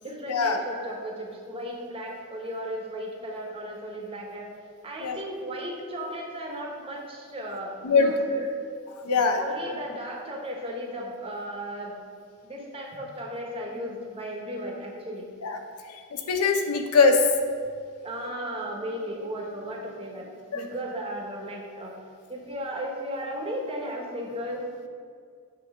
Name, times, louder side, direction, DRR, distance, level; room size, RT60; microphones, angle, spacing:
voice 1, 0.0-4.5 4.8-8.5 9.0-12.0 12.4-15.3 15.8-15.9 18.0-21.9 22.3-24.7, equal, 25° right, -1 dB, 1.0 m, -35 dB
voice 2, 9.0-9.4 15.4-15.6 16.1-17.2 20.5-20.6, left 4 dB, 85° left, 5 dB, 0.7 m, -21 dB
8.5 x 2.9 x 5.9 m, 2.2 s
head